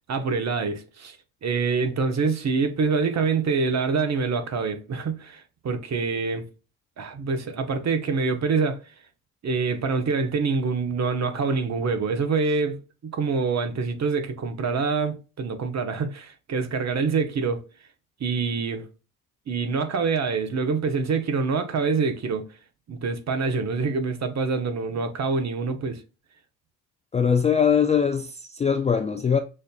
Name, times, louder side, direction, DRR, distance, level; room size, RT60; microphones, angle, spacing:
voice 1, 0.1-1.2 1.4-6.5 7.0-8.8 9.4-12.8 13.0-17.6 18.2-18.9 19.5-22.4 22.9-26.0, right 4 dB, 40° right, 1.0 m, -25 dB
voice 2, 27.1-29.4, left 7 dB, 15° left, 0.3 m, -21 dB
6.4 x 2.6 x 2.3 m
hypercardioid pair, 55°, 43 cm